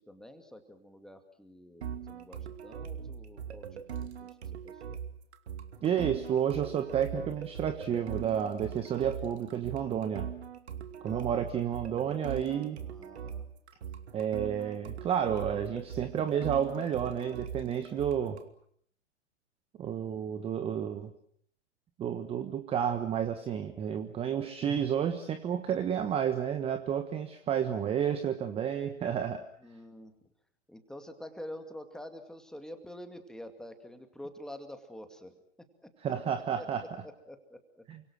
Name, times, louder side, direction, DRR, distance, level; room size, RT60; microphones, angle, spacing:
voice 1, 0.0-4.4 4.6-5.0 11.0-11.5 12.9-13.5 29.6-30.1 30.7-35.3 35.8-35.9 36.6-37.8, left 1 dB, ahead, 7 dB, 2.4 m, -47 dB
sound 1, 1.8-18.5, right 8 dB, 55° right, 2.7 m, -41 dB
voice 2, 5.8-10.3 11.0-12.8 14.1-18.4 19.8-21.1 22.0-29.4 36.0-36.9 37.9-38.0, right 8 dB, 15° right, 9 dB, 1.3 m, -31 dB
29.0 x 25.0 x 6.3 m, 0.66 s
figure-of-eight pair, 125°, 38 cm